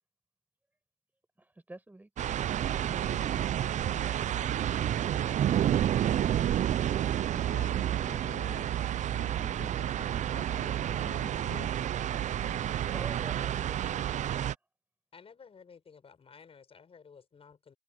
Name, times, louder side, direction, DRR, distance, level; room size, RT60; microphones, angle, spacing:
voice 1, 1.4-2.3 12.9-14.4, right 2 dB, 10° right, 7.5 m, -48 dB
sound 1, 2.2-14.5, right 11 dB, 45° right, 0.5 m, -30 dB
sound 2, 2.8-10.6, left 9 dB, 50° left, 2.4 m, -56 dB
voice 2, 7.3-8.7 9.1-12.6, left 12 dB, 65° left, 1.5 m, -50 dB
voice 3, 15.1-17.7, left 6 dB, 35° left, 5.8 m, -54 dB
open air
cardioid pair, 110°, 17 cm